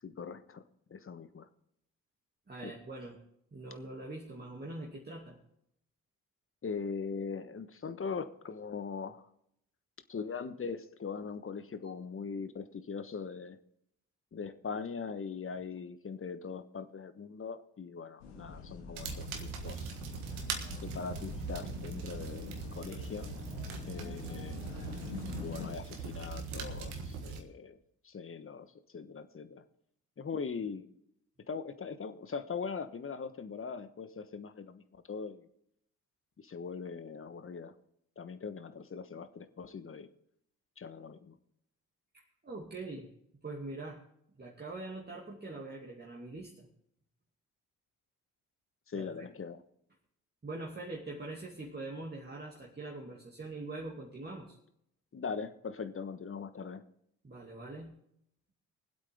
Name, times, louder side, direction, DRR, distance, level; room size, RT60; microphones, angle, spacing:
voice 1, 0.0-0.6 0.9-1.5 2.6-2.7 6.6-9.2 10.1-13.6 14.3-19.9 20.8-23.3 23.9-24.6 25.4-27.8 28.0-29.6 30.2-30.8 31.5-35.4 36.4-37.7 38.2-40.1 40.8-41.4 48.9-49.6 55.1-56.8, left 5 dB, 30° left, 11 dB, 1.2 m, -41 dB
voice 2, 2.5-3.2 3.5-5.4 42.1-43.1 43.4-44.0 44.4-46.7 48.9-49.3 50.4-54.6 57.2-57.9, right 2 dB, 25° right, -2 dB, 2.5 m, -43 dB
sound 1, 18.2-25.8, left 4 dB, 75° left, 2.0 m, -45 dB
sound 2, 18.9-27.4, right 4 dB, 75° right, 1.6 m, -41 dB
22.5 x 8.0 x 3.6 m, 0.72 s
hypercardioid pair, 45°, 42 cm